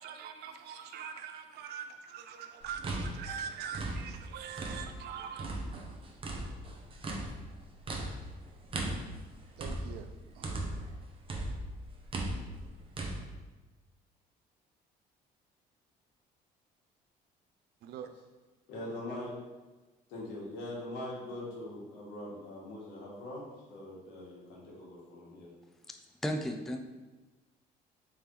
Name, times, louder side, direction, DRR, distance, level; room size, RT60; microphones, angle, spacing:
voice 1, 0.0-5.5 9.6-10.1 10.3-10.5 17.8-18.1, right 7 dB, 75° right, 0.5 m, -43 dB
sound 1, 2.6-5.1 5.4-11.0 11.3-13.2, right 1 dB, 30° right, 0.7 m, -38 dB
voice 2, 18.7-19.3 20.1-25.5, left 1 dB, 85° left, 1.5 m, -42 dB
voice 3, 25.9-26.8, equal, ahead, 0.3 m, -35 dB
3.5 x 3.3 x 4.4 m
cardioid pair, 110°, 17 cm